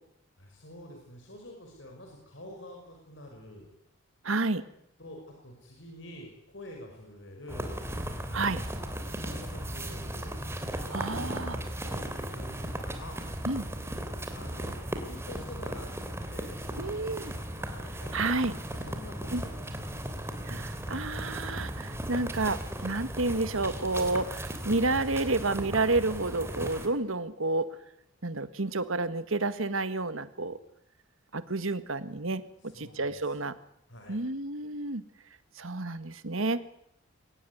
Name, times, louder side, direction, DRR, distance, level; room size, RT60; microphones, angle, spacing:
voice 1, 0.4-3.7 5.0-7.8 9.2-10.4 11.8-13.2 14.3-14.8 15.0-15.9 16.3-18.3 18.7-19.9 32.6-33.5 33.9-34.2, left 1 dB, 60° left, 1 dB, 5.6 m, -47 dB
voice 2, 4.2-4.6 8.3-8.6 10.9-11.6 13.5-13.7 16.8-17.3 18.1-18.5 19.3-19.4 20.4-27.7 28.2-30.6 31.3-33.5 34.1-35.0 35.6-36.6, right 2 dB, 75° right, 12 dB, 1.7 m, -30 dB
sound 1, 7.5-26.9, right 1 dB, 15° right, 3.1 m, -36 dB
23.0 x 19.5 x 9.5 m, 0.77 s
head